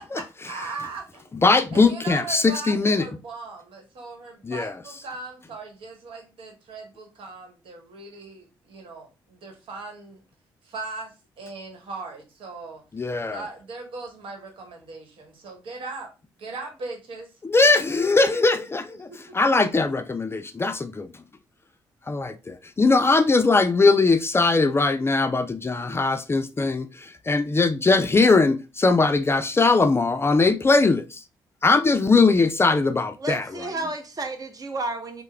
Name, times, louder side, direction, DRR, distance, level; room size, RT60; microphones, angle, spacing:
voice 1, 0.0-1.3 1.7-10.2 10.6-12.8 13.3-16.1 16.4-17.3 19.1-19.2, right 3 dB, 65° right, 1.2 m, -39 dB
voice 2, 1.4-3.1 4.4-4.7 12.9-13.4 17.4-21.1 22.1-31.2 31.6-33.4, left 3 dB, 25° left, 0.4 m, -20 dB
voice 3, 33.2-35.2, right 2 dB, 40° right, 0.8 m, -31 dB
3.3 x 2.0 x 3.3 m
hypercardioid pair, 45°, 10 cm